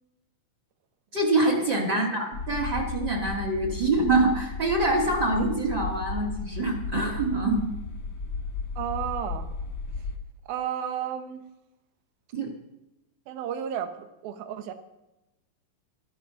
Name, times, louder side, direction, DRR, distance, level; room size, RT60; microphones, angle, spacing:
voice 1, 1.1-7.7 12.3-12.5, right 2 dB, 35° right, 2 dB, 1.8 m, -25 dB
voice 2, 1.9-2.2 8.8-9.5 10.5-11.4 13.3-14.7, right 9 dB, 90° right, 9 dB, 2.8 m, -33 dB
sound 1, 2.3-10.2, left 4 dB, 55° left, 1.4 m, -35 dB
13.0 x 12.5 x 5.7 m, 0.96 s
omnidirectional pair, 4.1 m